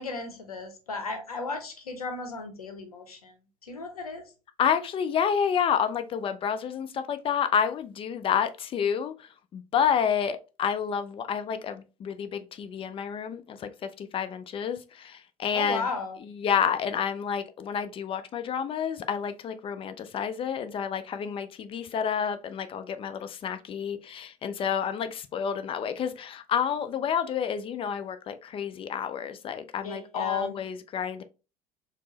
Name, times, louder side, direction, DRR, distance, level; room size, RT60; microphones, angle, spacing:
voice 1, 0.0-3.3 3.6-4.2 15.5-16.2 29.8-30.6, left 3 dB, 80° left, 0.7 m, -35 dB
voice 2, 4.6-9.1 9.5-13.7 14.0-15.9 16.2-31.2, left 7 dB, 30° left, 0.4 m, -29 dB
4.3 x 2.0 x 2.8 m
figure-of-eight pair, 60°, 19 cm